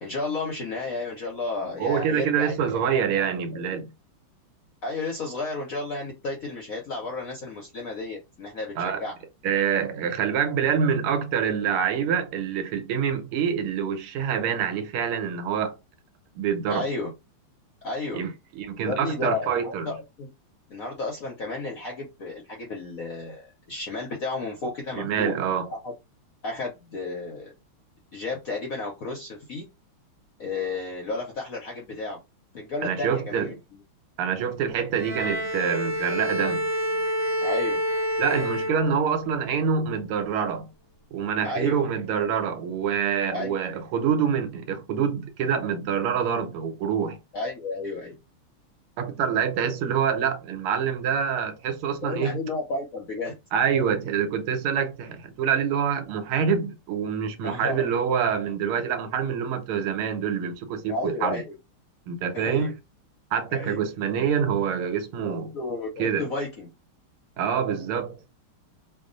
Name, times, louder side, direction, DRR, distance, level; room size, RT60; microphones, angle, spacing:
voice 1, 0.0-3.2 3.5-3.6 4.8-9.1 16.7-17.1 17.8-18.2 18.8-20.3 20.7-25.3 25.7-25.9 26.4-27.5 28.1-29.7 30.4-32.2 32.5-33.8 37.4-37.8 41.4-41.8 43.3-43.6 47.3-48.1 52.0-53.3 57.4-57.9 60.9-61.5 62.3-62.7 63.5-63.8 65.2-66.7, left 3 dB, 65° left, 0.8 m, -32 dB
voice 2, 1.8-3.9 8.8-9.0 9.4-15.8 16.3-16.9 18.1-19.9 24.9-25.7 32.8-33.5 34.2-36.7 38.2-40.7 41.1-47.2 49.0-52.4 53.5-61.4 62.1-62.7 63.3-65.5 66.0-66.3 67.4-68.2, right 7 dB, 85° right, 1.7 m, -26 dB
Bowed string instrument, 35.0-39.4, equal, 65° right, 1.5 m, -28 dB
3.4 x 2.4 x 3.8 m
omnidirectional pair, 2.4 m